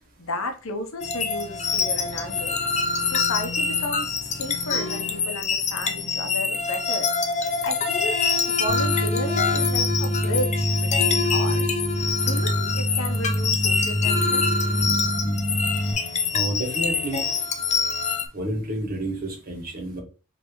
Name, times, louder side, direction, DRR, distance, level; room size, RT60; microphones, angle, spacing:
voice 1, 0.2-2.6 3.0-4.1 4.4-7.1 7.6-8.2 8.5-14.5, left 1 dB, 70° left, 0.9 m, -33 dB
sound 1, 1.0-18.3, left 5 dB, 35° left, 0.6 m, -25 dB
sound 2, 8.7-15.9, equal, 20° right, 1.2 m, -26 dB
voice 2, 16.3-17.3 18.3-20.0, right 1 dB, 45° right, 1.6 m, -30 dB
5.1 x 3.3 x 3.1 m
head